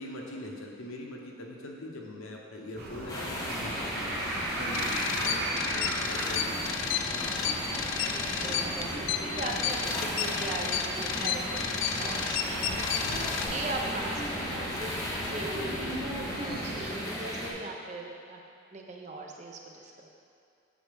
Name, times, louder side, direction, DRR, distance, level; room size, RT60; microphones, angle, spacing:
voice 1, 0.0-7.0, left 1 dB, 85° left, 0 dB, 0.8 m, -42 dB
sound 1, 2.8-16.9, right 1 dB, 50° right, 1.0 m, -37 dB
sound 2, 3.1-17.5, left 1 dB, 15° left, 0.7 m, -36 dB
sound 3, 4.7-13.5, left 8 dB, 70° left, 0.3 m, -32 dB
voice 2, 7.9-14.9 15.2-16.1 16.4-18.4 18.7-20.1, right 2 dB, 35° right, 1 dB, 0.5 m, -40 dB
8.8 x 4.1 x 3.4 m, 2.5 s
head